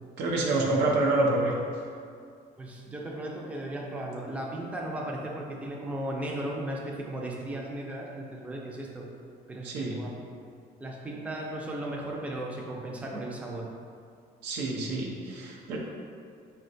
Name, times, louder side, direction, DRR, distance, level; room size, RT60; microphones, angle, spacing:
voice 1, 0.2-1.5 9.6-10.0 14.4-15.8, right 2 dB, 90° right, -2 dB, 0.6 m, -27 dB
voice 2, 2.6-9.1 9.5-10.1 10.8-13.7 14.7-14.8, right 1 dB, 10° right, -2 dB, 0.4 m, -36 dB
4.0 x 2.2 x 2.6 m, 2.3 s
cardioid pair, 110°, 17 cm